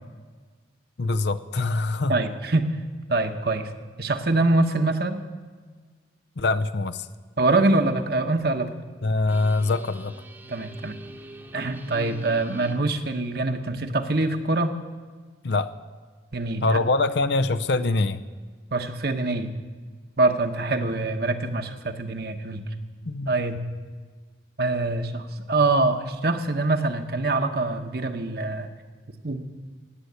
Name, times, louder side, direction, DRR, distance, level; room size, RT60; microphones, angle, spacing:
voice 1, 1.0-2.1 6.4-7.1 9.0-10.1 15.4-15.8 16.6-18.2 23.1-23.3, left 3 dB, 65° left, 11 dB, 0.6 m, -24 dB
voice 2, 2.1-2.7 3.1-3.7 4.0-5.2 7.4-8.7 10.5-11.0 11.5-14.7 16.3-16.8 18.7-19.5 20.2-22.6 23.3-23.6 24.6-28.7 29.2-29.4, right 2 dB, 55° right, 6 dB, 1.1 m, -24 dB
sound 1, 7.9-8.1 9.3-12.7, right 1 dB, 10° right, 1.0 m, -44 dB
16.0 x 10.0 x 8.1 m, 1.5 s
head